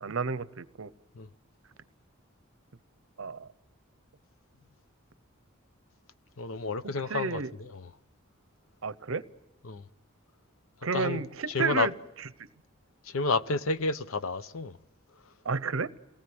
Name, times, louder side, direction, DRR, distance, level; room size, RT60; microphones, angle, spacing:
voice 1, 0.0-0.9 3.2-3.5 6.8-7.5 8.8-9.2 10.8-11.9 15.4-15.9, right 5 dB, 80° right, 0.8 m, -31 dB
voice 2, 6.4-7.9 9.6-9.8 10.9-11.2 11.5-11.9 13.0-14.8, left 3 dB, 85° left, 0.8 m, -30 dB
27.5 x 18.5 x 7.9 m
head